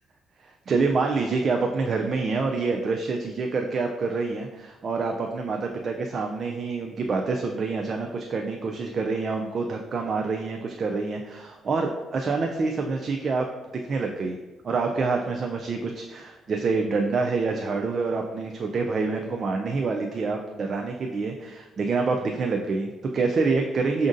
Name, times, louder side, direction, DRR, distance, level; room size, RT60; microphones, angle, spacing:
voice 1, 0.4-13.5 13.9-14.4 14.6-24.1, right 4 dB, 50° right, 3 dB, 0.3 m, -27 dB
6.1 x 2.5 x 2.5 m, 1.2 s
cardioid pair, 90°, 0 cm